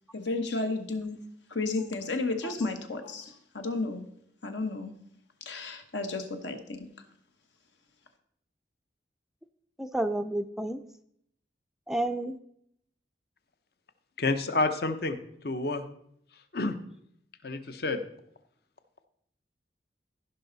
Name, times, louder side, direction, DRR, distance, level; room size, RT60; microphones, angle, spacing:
voice 1, 0.1-4.0 4.4-4.9 5.4-6.9, left 3 dB, 80° left, 1.2 m, -33 dB
voice 2, 9.8-10.8 11.9-12.4, right 1 dB, 5° right, 0.3 m, -30 dB
voice 3, 14.2-15.2 15.4-15.9 16.5-16.8 17.4-18.0, left 2 dB, 55° left, 0.7 m, -28 dB
15.5 x 5.5 x 4.0 m
head